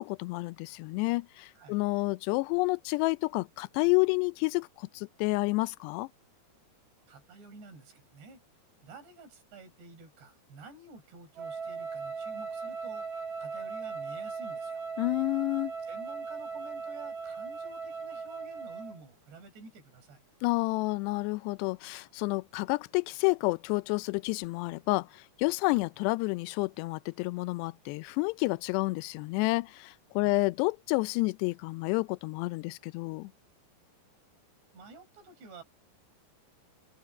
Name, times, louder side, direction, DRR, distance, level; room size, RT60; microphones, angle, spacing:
voice 1, 0.0-6.1 15.0-15.7 20.4-33.3, left 25 dB, 85° left, 2.7 m, -30 dB
voice 2, 7.1-8.4 8.8-13.1 13.4-14.8 15.8-20.2 30.2-30.5 34.7-35.6, right 3 dB, 85° right, 7.4 m, -51 dB
Wind instrument woodwind instrument, 11.4-19.0, right 5 dB, 65° right, 5.1 m, -38 dB
omnidirectional pair, 4.8 m